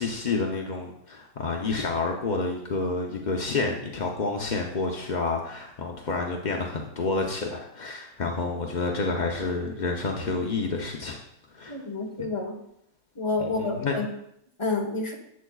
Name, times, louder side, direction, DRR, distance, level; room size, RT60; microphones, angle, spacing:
voice 1, 0.0-11.2 11.5-11.8 13.4-14.0, left 3 dB, 50° left, 1 dB, 0.5 m, -29 dB
voice 2, 11.7-12.6 13.1-14.1 14.6-15.1, left 3 dB, 20° left, 1 dB, 1.2 m, -29 dB
11.0 x 8.1 x 2.3 m, 0.75 s
omnidirectional pair, 1.7 m